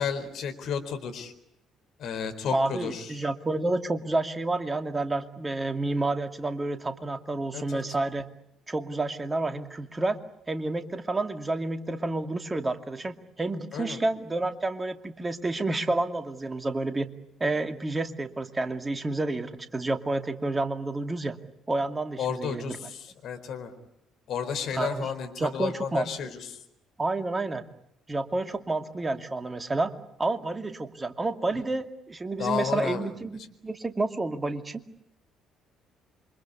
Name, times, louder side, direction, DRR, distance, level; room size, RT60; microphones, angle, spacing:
voice 1, 0.0-1.3 2.0-3.1 7.5-7.8 13.7-14.0 22.2-23.7 24.3-26.5 32.4-33.1, left 7 dB, 55° left, 7 dB, 4.3 m, -32 dB
voice 2, 2.5-8.3 8.7-10.2 10.5-17.1 17.4-21.4 21.7-22.9 24.7-25.1 25.4-26.1 27.0-27.6 28.1-29.9 30.2-34.8, right 2 dB, 20° right, 8 dB, 2.5 m, -29 dB
28.0 x 24.5 x 8.5 m, 0.79 s
figure-of-eight pair, 45°, 0 cm